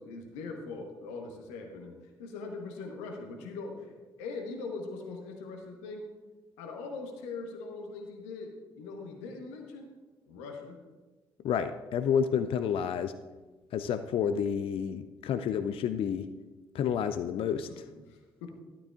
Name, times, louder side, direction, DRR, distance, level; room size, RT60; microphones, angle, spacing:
voice 1, 0.0-6.1 6.6-9.9 10.3-10.8 17.7-17.8 18.1-18.5, left 3 dB, 70° left, 3 dB, 1.1 m, -41 dB
voice 2, 11.4-13.1 13.7-16.3 16.7-17.9, left 8 dB, 50° left, 10 dB, 0.4 m, -30 dB
12.0 x 12.0 x 2.5 m, 1.3 s
figure-of-eight pair, 40°, 12 cm